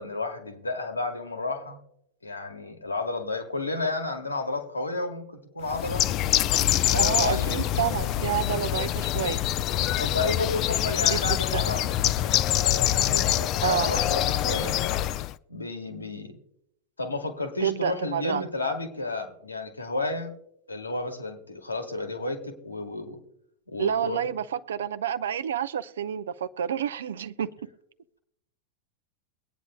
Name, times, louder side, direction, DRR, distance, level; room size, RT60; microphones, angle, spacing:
voice 1, 0.0-1.8 2.2-6.1 6.9-7.5 10.0-12.0 12.6-14.8 15.5-16.4 17.0-20.3 20.7-23.2 23.7-24.3, left 3 dB, 80° left, 1.5 m, -32 dB
Bird, 5.7-15.3, left 12 dB, 35° left, 0.4 m, -25 dB
voice 2, 6.9-9.4 11.1-11.2 11.5-11.6 13.6-13.9 17.6-18.5 23.8-27.5, right 9 dB, 65° right, 0.5 m, -29 dB
23.0 x 9.3 x 2.3 m
figure-of-eight pair, 90°, 0 cm